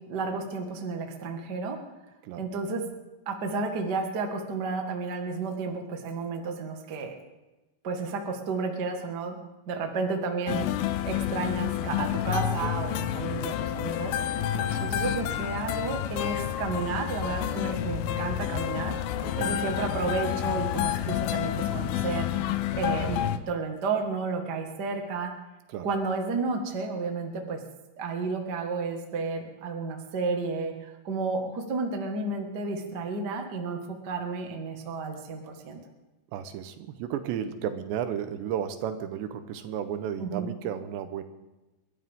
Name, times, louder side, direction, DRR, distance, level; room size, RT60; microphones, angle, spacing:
voice 1, 0.1-1.8 2.4-2.8 3.2-7.2 7.8-9.4 9.7-14.2 14.8-19.0 19.4-22.3 22.7-25.3 25.8-27.6 28.0-35.8 40.2-40.5, right 4 dB, 55° right, 3 dB, 1.1 m, -32 dB
Day Guitar In The Park, 10.5-23.4, left 11 dB, 80° left, 2.2 m, -29 dB
voice 2, 14.5-15.2 19.2-19.7 25.7-25.9 36.3-41.2, right 9 dB, 85° right, 9 dB, 3.2 m, -34 dB
29.0 x 12.5 x 3.7 m, 1.1 s
omnidirectional pair, 4.9 m